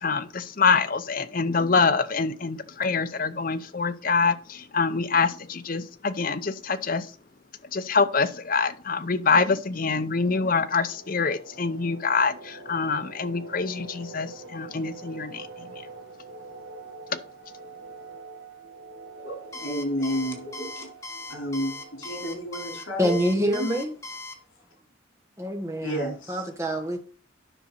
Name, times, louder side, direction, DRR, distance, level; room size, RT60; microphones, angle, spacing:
voice 1, 0.0-7.1 7.7-15.7 17.1-17.2, left 4 dB, 45° left, 0.6 m, -25 dB
sound 1, 9.1-23.6, right 3 dB, 65° right, 1.2 m, -46 dB
voice 2, 19.2-20.9 21.3-23.7 25.8-26.4, equal, 75° left, 4.3 m, -31 dB
Alarm, 19.5-24.4, left 2 dB, 15° left, 1.1 m, -38 dB
voice 3, 23.0-23.9 25.4-27.0, equal, 15° right, 1.2 m, -26 dB
10.0 x 6.1 x 4.2 m
head